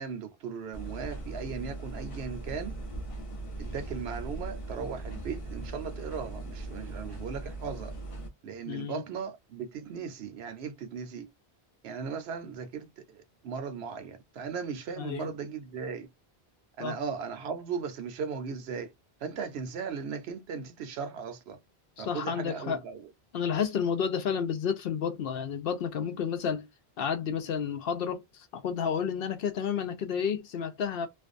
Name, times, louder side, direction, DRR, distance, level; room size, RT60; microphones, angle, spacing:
voice 1, 0.0-2.7 3.6-7.9 8.4-11.3 11.8-16.1 16.8-18.9 19.2-21.6 22.0-23.1, right 6 dB, 75° right, 0.9 m, -37 dB
sound 1, 0.7-8.3, right 2 dB, 40° left, 0.6 m, -39 dB
voice 2, 8.7-9.0 15.0-15.3 16.8-17.0 22.0-22.8 23.3-26.7 27.0-31.1, left 7 dB, 70° left, 0.7 m, -31 dB
2.5 x 2.2 x 2.4 m
omnidirectional pair, 1.1 m